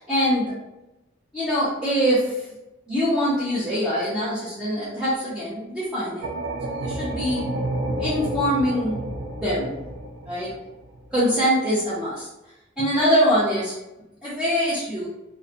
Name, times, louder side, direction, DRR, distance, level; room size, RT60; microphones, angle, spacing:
voice 1, 0.1-0.5 1.3-2.3 2.9-6.3 6.7-7.4 8.0-9.0 9.4-9.7 10.3-10.5 11.1-12.3 12.8-13.7 14.2-15.1, equal, 5° right, -11 dB, 0.5 m, -23 dB
sound 1, 6.2-11.2, right 1 dB, 80° right, 0.4 m, -30 dB
2.3 x 2.1 x 2.6 m, 0.93 s
head